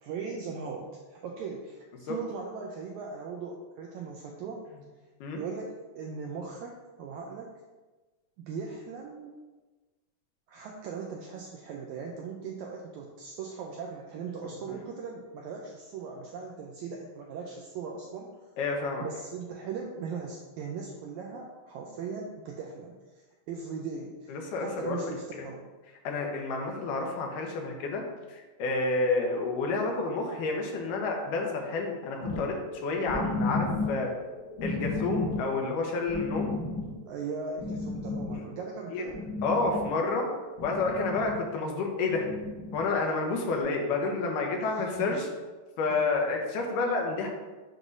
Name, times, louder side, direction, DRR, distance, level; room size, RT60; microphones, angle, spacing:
voice 1, 0.0-4.6 5.3-7.5 8.4-9.3 10.5-18.5 19.0-25.7 37.1-39.2 44.7-45.2 45.9-46.0, right 5 dB, 85° right, 0 dB, 1.7 m, -39 dB
voice 2, 18.6-19.1 24.3-25.0 26.0-28.0 28.3-32.6 32.8-34.1 34.6-36.6 38.9-39.1 39.4-40.3 40.6-42.3 42.7-45.2 45.8-47.3, left 3 dB, 75° left, 1 dB, 2.3 m, -29 dB
sound 1, 32.2-40.1 40.4-41.3 42.1-42.8 43.6-43.7, left 3 dB, 55° left, 2.5 m, -34 dB
7.6 x 6.0 x 2.6 m, 1.2 s
omnidirectional pair, 3.9 m